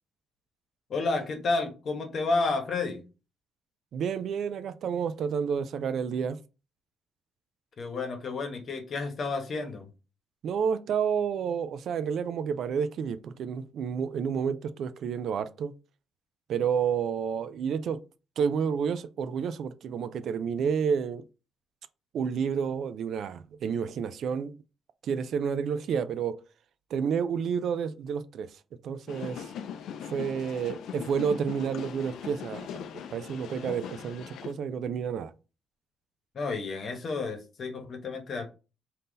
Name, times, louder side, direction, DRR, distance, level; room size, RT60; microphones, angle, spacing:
voice 1, 0.9-3.0 7.8-9.9 36.3-38.5, left 3 dB, 55° left, 1.1 m, -31 dB
voice 2, 3.9-6.4 10.4-15.7 16.5-18.0 18.4-21.2 22.1-24.5 25.0-26.4 26.9-28.5 28.8-29.5 30.1-32.8 33.1-35.3, right 7 dB, 65° right, 0.4 m, -30 dB
sound 1, 29.1-34.5, left 8 dB, 75° left, 0.4 m, -40 dB
3.6 x 2.8 x 3.8 m
cardioid pair, 90°, 0 cm